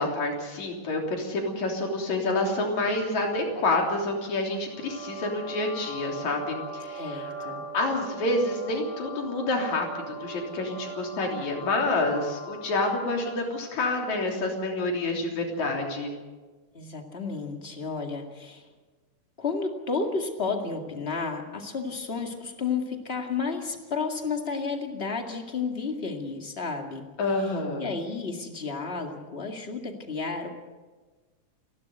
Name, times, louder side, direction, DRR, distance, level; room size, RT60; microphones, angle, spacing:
voice 1, 0.0-16.1 27.2-27.9, left 2 dB, 65° left, 1 dB, 4.7 m, -28 dB
sound 1, 4.6-13.5, right 1 dB, 85° right, 8.1 m, -40 dB
voice 2, 7.0-7.6 16.7-18.7 19.4-27.1 27.8-30.5, left 4 dB, 25° left, 4 dB, 1.8 m, -32 dB
29.0 x 12.0 x 8.0 m, 1.3 s
omnidirectional pair, 3.5 m